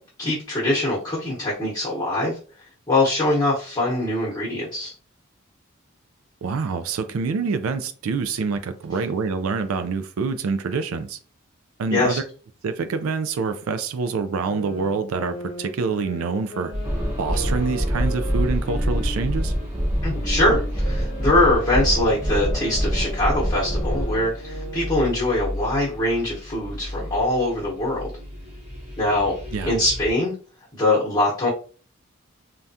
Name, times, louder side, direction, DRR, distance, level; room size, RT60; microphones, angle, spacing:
voice 1, 0.2-2.4 2.9-4.9 11.9-12.2 20.0-28.1 29.0-29.3 29.6-30.3 30.7-31.5, left 1 dB, 20° left, 0.9 m, -22 dB
voice 2, 6.4-11.2 11.8-12.2 12.6-16.7 17.2-19.5 29.5-29.7, right 4 dB, 80° right, 0.4 m, -26 dB
sound 1, 14.3-19.7 20.1-25.0, right 1 dB, 70° left, 0.7 m, -38 dB
sound 2, 16.7-30.1, left 1 dB, 30° right, 0.9 m, -32 dB
sound 3, 16.8-24.1, equal, 10° right, 0.4 m, -26 dB
3.4 x 2.2 x 2.6 m
head